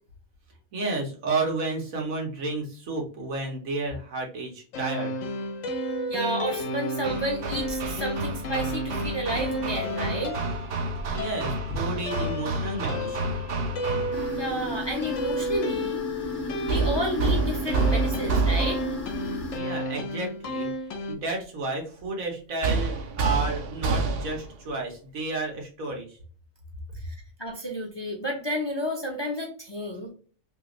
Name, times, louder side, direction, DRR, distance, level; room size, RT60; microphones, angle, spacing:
voice 1, 0.7-5.1 11.1-13.4 19.5-20.7 21.1-26.2, right 3 dB, 90° right, 0 dB, 1.6 m, -31 dB
sound 1, 4.7-21.1, equal, 70° left, 1.0 m, -33 dB
voice 2, 6.1-10.4 14.4-16.0 16.7-18.8 27.0-30.1, equal, 30° left, 1 dB, 0.5 m, -31 dB
Hammer, 7.0-14.5 16.7-19.1 22.6-24.6, right 3 dB, 60° right, 0.7 m, -29 dB
sound 2, 14.1-19.6, equal, 45° left, 0.9 m, -34 dB
3.3 x 2.5 x 3.0 m, 0.41 s
omnidirectional pair, 1.4 m